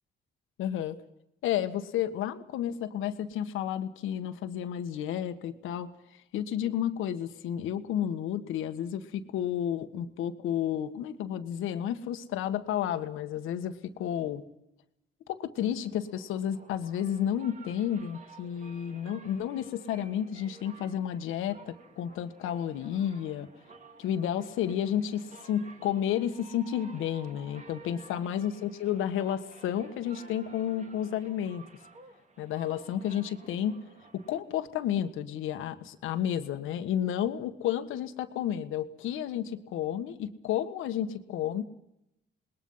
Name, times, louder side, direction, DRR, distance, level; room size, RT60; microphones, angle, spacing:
voice 1, 0.6-1.0 1.4-5.9 6.3-14.4 15.3-23.5 24.0-31.6 32.4-33.8 34.1-41.6, left 10 dB, 90° left, 9 dB, 1.5 m, -31 dB
sound 1, 15.6-35.0, right 3 dB, 40° right, 2.8 m, -54 dB
27.5 x 20.5 x 5.7 m, 0.83 s
cardioid pair, 90°, 20 cm